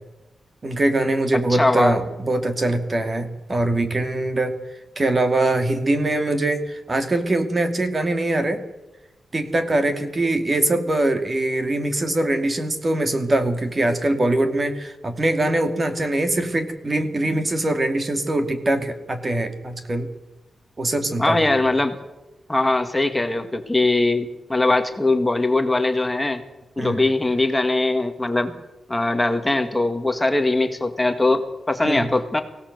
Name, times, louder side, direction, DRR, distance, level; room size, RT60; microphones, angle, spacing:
voice 1, 0.6-4.6 5.0-8.6 9.3-20.1 20.8-21.6 26.8-27.0 31.8-32.1, right 2 dB, 30° right, 7 dB, 2.4 m, -22 dB
voice 2, 1.5-2.0 21.2-22.0 22.5-26.4 26.8-28.6 28.9-32.4, left 2 dB, 15° left, 7 dB, 1.8 m, -21 dB
23.5 x 17.0 x 8.0 m, 1.0 s
wide cardioid pair, 110°, 0 cm